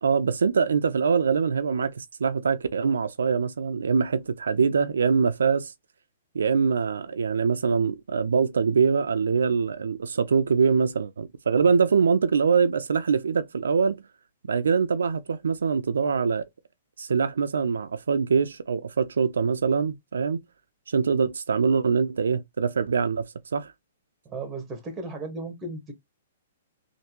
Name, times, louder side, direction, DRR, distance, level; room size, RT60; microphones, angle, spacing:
voice 1, 0.0-5.7 6.3-14.0 14.5-16.5 17.0-20.4 20.9-23.3 23.5-23.7, right 5 dB, 90° right, 0.4 m, -23 dB
voice 2, 24.2-25.9, right 2 dB, 15° right, 1.3 m, -35 dB
3.3 x 2.6 x 2.9 m
hypercardioid pair, 145°, 0 cm